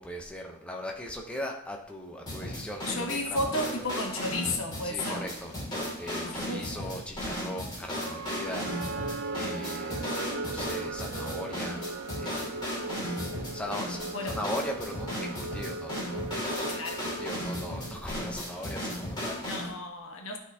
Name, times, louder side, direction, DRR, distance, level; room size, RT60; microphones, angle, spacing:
voice 1, 0.0-3.8 4.8-8.7 9.3-10.0 10.4-11.8 12.2-12.6 13.5-16.6 17.2-19.4, left 1 dB, 5° left, 1 dB, 0.6 m, -39 dB
sound 1, 2.3-19.7, left 1 dB, 20° left, 2.3 m, -35 dB
voice 2, 2.9-5.3 6.2-6.8 14.1-14.4 16.7-17.1 19.4-20.4, left 2 dB, 75° left, 3 dB, 1.1 m, -33 dB
sound 2, 8.0-18.2, right 3 dB, 80° right, 0.6 m, -38 dB
12.0 x 4.1 x 2.7 m, 0.75 s
head